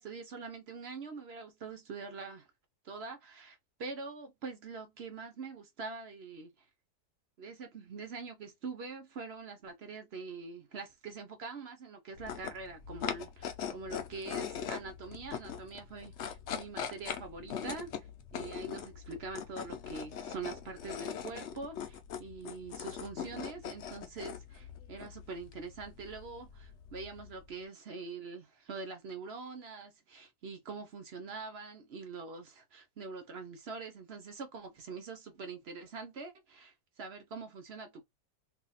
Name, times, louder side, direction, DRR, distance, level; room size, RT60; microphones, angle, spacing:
voice 1, 0.0-2.5 2.8-6.5 7.4-18.1 18.3-38.0, right 4 dB, 55° right, 0.8 m, -44 dB
sound 1, 12.1-27.5, left 8 dB, 60° left, 0.7 m, -42 dB
2.8 x 2.3 x 3.9 m
omnidirectional pair, 1.7 m